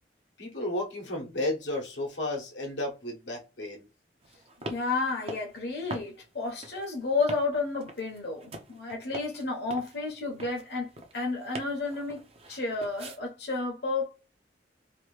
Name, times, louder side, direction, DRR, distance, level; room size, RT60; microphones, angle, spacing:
voice 1, 0.4-3.9, left 1 dB, 85° left, 1.1 m, -33 dB
sound 1, 4.2-13.2, right 1 dB, 35° right, 0.6 m, -44 dB
voice 2, 4.7-14.3, left 3 dB, 65° left, 0.9 m, -31 dB
3.0 x 2.6 x 3.1 m
head